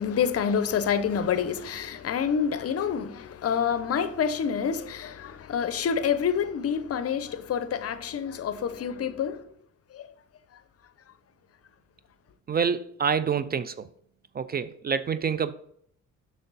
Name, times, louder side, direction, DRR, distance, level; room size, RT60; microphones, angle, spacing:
voice 1, 0.0-9.4 9.9-10.1, left 7 dB, 50° left, 0.7 m, -27 dB
voice 2, 12.5-13.9 14.3-15.5, right 6 dB, 30° right, 0.4 m, -27 dB
7.7 x 6.2 x 4.0 m
cardioid pair, 90°, 30 cm